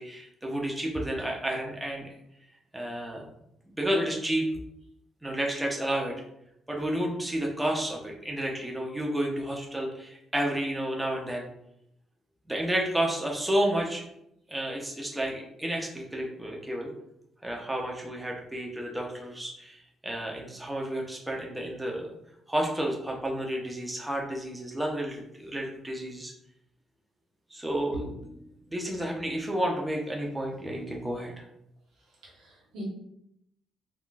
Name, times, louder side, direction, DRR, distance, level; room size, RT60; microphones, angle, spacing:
voice 1, 0.0-2.1 2.7-3.2 3.8-4.4 5.2-6.1 6.7-11.5 12.5-14.0 14.5-16.9 17.4-22.1 22.5-26.3 27.5-28.0 28.7-31.3, right 1 dB, 10° right, -1 dB, 0.6 m, -31 dB
voice 2, 27.9-28.6 32.2-32.8, equal, 85° right, -3 dB, 1.0 m, -41 dB
3.5 x 2.3 x 2.5 m, 0.77 s
cardioid pair, 90°, 0 cm